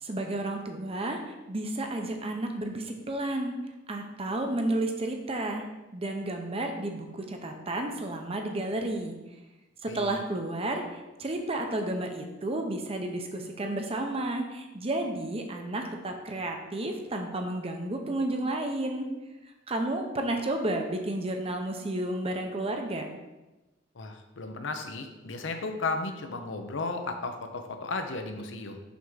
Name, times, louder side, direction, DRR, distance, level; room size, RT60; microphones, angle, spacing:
voice 1, 0.0-3.5 3.9-5.7 5.9-9.1 9.8-19.1 19.7-23.1, right 1 dB, 30° right, 4 dB, 0.7 m, -32 dB
voice 2, 24.0-28.8, left 3 dB, 75° left, 6 dB, 0.7 m, -34 dB
6.1 x 3.6 x 5.6 m, 1.1 s
head